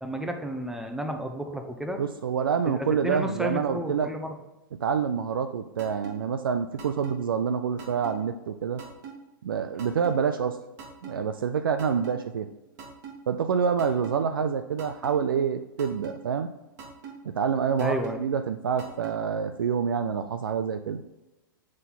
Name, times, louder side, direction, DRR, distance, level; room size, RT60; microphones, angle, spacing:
voice 1, 0.0-2.0 2.7-4.3 17.8-18.2, right 1 dB, 5° right, 5 dB, 0.8 m, -32 dB
voice 2, 2.0-4.1 4.8-8.8 9.4-10.6 11.0-12.5 13.3-16.5 17.2-21.0, right 7 dB, 75° right, 9 dB, 0.4 m, -27 dB
sound 1, 5.8-6.1 6.8-7.1 7.8-8.1 8.8-9.1 9.8-10.1 10.8-11.1 11.8-12.1 12.8-13.1 13.8-14.1 14.8-15.1 15.8-16.1 16.8-17.1 17.8-18.1 18.8-19.1, right 7 dB, 50° right, 1.9 m, -41 dB
7.3 x 4.1 x 4.0 m, 1.0 s
figure-of-eight pair, 105°, 12 cm